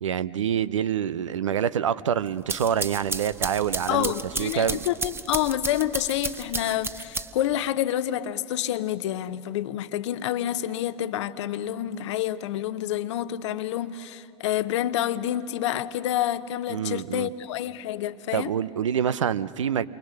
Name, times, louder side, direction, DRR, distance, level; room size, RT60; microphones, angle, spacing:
voice 1, 0.0-4.1 4.4-4.8 16.7-17.3 18.3-19.9, right 9 dB, 85° right, 0.6 m, -26 dB
sound 1, 2.3-7.6, right 3 dB, 15° right, 0.9 m, -33 dB
voice 2, 3.9-18.5, left 12 dB, 70° left, 0.8 m, -28 dB
28.5 x 24.0 x 6.4 m
hypercardioid pair, 80°, 16 cm